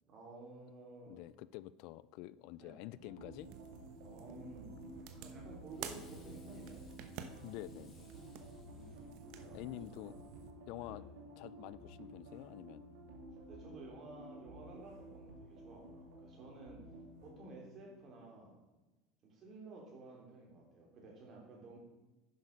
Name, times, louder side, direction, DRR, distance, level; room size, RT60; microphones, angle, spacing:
voice 1, 0.1-1.2 2.6-2.9 4.0-4.7 5.2-6.8 8.7-10.1 10.7-11.0 13.5-16.8 17.2-18.6 19.2-21.8, right 2 dB, 40° right, -1 dB, 3.4 m, -53 dB
voice 2, 1.1-3.5 7.4-8.1 9.5-10.2 10.7-11.0 11.4-12.8, left 16 dB, 65° left, 19 dB, 0.3 m, -48 dB
sound 1, 2.9-17.3, right 1 dB, 85° right, 2.7 m, -53 dB
sound 2, 3.4-10.5, right 8 dB, 65° right, 0.9 m, -52 dB
Fireworks, 5.7-9.6, left 4 dB, 30° left, 3.1 m, -67 dB
10.0 x 6.2 x 5.3 m, 1.1 s
supercardioid pair, 115°, 0 cm